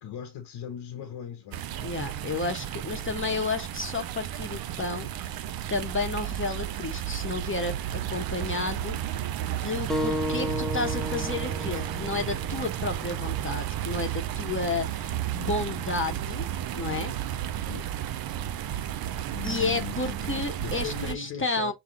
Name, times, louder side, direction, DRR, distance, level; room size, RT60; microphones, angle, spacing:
voice 1, 0.0-1.7 17.7-17.9 19.3-21.7, left 8 dB, 85° left, 0.9 m, -39 dB
sound 1, 1.5-21.1, right 11 dB, 65° right, 0.5 m, -33 dB
voice 2, 1.8-5.4 5.7-16.5 16.7-17.1 19.4-21.7, left 3 dB, 30° left, 0.9 m, -32 dB
sound 2, 9.9-15.0, left 1 dB, ahead, 0.6 m, -35 dB
5.6 x 2.1 x 3.7 m
supercardioid pair, 50°, 39 cm